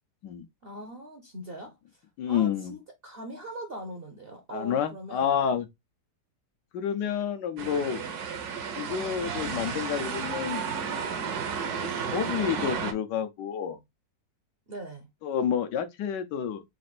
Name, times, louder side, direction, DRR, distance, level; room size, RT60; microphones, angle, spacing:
voice 1, 0.6-1.8 2.3-5.4 14.7-15.1, right 1 dB, 50° right, 0.7 m, -41 dB
voice 2, 2.2-2.7 4.5-5.7 6.7-8.0 8.8-10.6 11.8-13.8 15.2-16.6, left 8 dB, 80° left, 1.4 m, -29 dB
sound 1, 7.6-12.9, right 6 dB, 70° right, 1.2 m, -32 dB
4.2 x 2.5 x 4.1 m
omnidirectional pair, 1.9 m